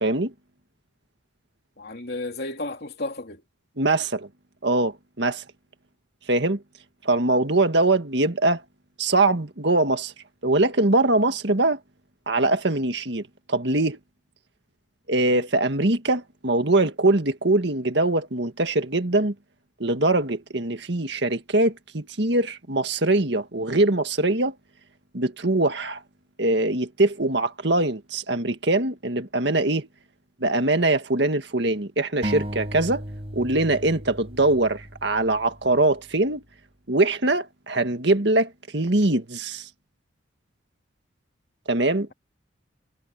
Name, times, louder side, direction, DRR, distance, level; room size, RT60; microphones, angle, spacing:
voice 1, 0.0-0.3 3.8-4.3 4.6-5.4 6.3-6.6 7.0-8.6 9.0-10.1 10.4-11.8 12.3-14.0 15.1-19.3 19.8-24.6 25.1-26.0 26.4-29.9 30.4-33.0 33.3-36.4 36.9-39.7 41.7-42.1, right 2 dB, 60° right, 1.9 m, -22 dB
voice 2, 1.8-3.4 15.3-15.4, left 2 dB, 55° left, 3.1 m, -33 dB
sound 1, 32.2-35.8, equal, 30° right, 5.3 m, -35 dB
head